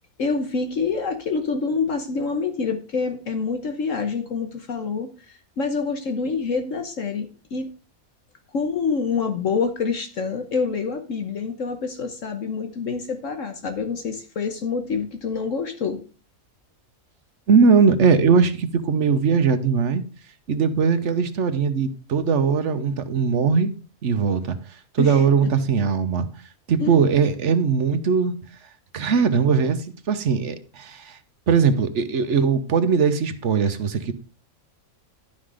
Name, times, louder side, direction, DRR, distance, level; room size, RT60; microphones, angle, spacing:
voice 1, 0.2-7.7 8.5-16.0 25.0-25.5 26.8-27.0, left 5 dB, 65° left, 1.4 m, -27 dB
voice 2, 17.5-20.0 20.5-23.7 24.0-26.3 26.7-28.3 28.9-31.2 31.5-34.1, right 5 dB, 60° right, 1.2 m, -20 dB
11.5 x 5.8 x 4.9 m
omnidirectional pair, 1.5 m